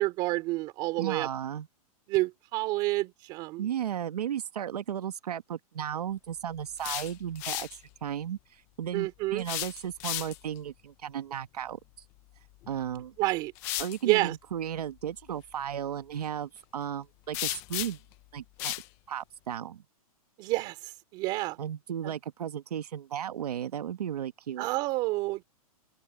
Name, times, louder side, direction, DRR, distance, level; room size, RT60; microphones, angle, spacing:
voice 1, 0.0-1.3 2.1-3.7 8.9-9.4 13.2-13.5 14.0-14.3 20.4-21.6 22.0-22.1 24.6-25.4, right 20 dB, 20° right, 3.1 m, -29 dB
voice 2, 1.0-1.7 3.6-11.8 12.7-13.1 13.8-18.0 18.3-18.7 19.1-19.8 21.6-24.7, right 9 dB, 85° right, 1.5 m, -35 dB
sound 1, 6.6-7.8 9.4-10.6 12.6-12.8 13.5-14.0 17.3-18.1 18.6-18.9, left 17 dB, 15° left, 0.4 m, -34 dB
open air
hypercardioid pair, 175°, 19 cm